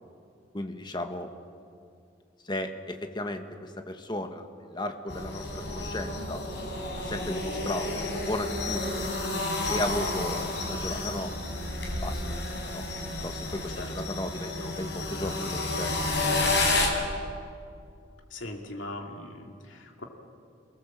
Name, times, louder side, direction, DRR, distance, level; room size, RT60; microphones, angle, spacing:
voice 1, 0.5-1.3 2.5-4.4 4.7-6.4 7.1-9.1 9.7-11.3 12.0-12.4 12.7-12.8 13.2-16.8, left 1 dB, 25° left, 6 dB, 1.4 m, -35 dB
sound 1, 5.1-16.9, left 2 dB, 65° left, 4.8 m, -31 dB
voice 2, 18.3-20.0, left 2 dB, 80° left, 2 dB, 2.8 m, -40 dB
28.0 x 18.5 x 7.5 m, 2.4 s
head